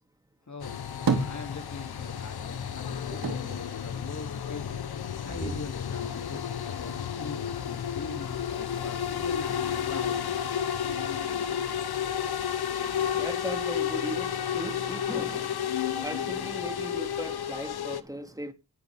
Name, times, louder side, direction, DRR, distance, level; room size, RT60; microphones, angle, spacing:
voice 1, 0.5-4.8 5.2-10.2, left 3 dB, 50° left, 2.8 m, -42 dB
sound 1, 0.6-18.0, left 9 dB, 90° left, 1.1 m, -32 dB
sound 2, 0.6-2.1 2.4-4.8 5.2-6.1, right 4 dB, 65° right, 2.5 m, -33 dB
voice 2, 5.3-5.6 12.7-18.5, right 1 dB, 10° right, 2.4 m, -38 dB
20.5 x 8.2 x 3.6 m
cardioid pair, 55°, 37 cm